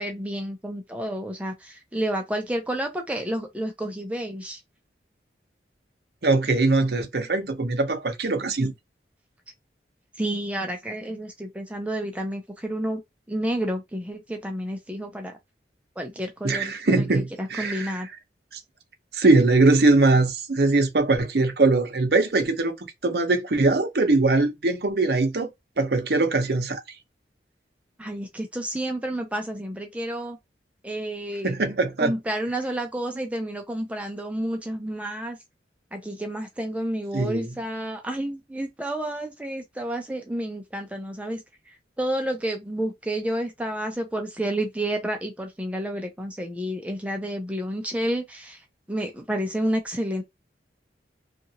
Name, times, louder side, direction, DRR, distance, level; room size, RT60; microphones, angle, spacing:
voice 1, 0.0-4.6 10.2-13.0 13.3-15.3 16.0-18.1 28.0-30.4 30.8-31.5 32.0-35.4 35.9-50.2, right 1 dB, 5° right, 0.4 m, -30 dB
voice 2, 6.2-8.7 16.4-18.0 18.5-18.6 19.1-25.5 25.8-26.8 31.4-32.1 37.1-37.5, right 3 dB, 60° right, 0.7 m, -21 dB
2.7 x 2.5 x 2.8 m
head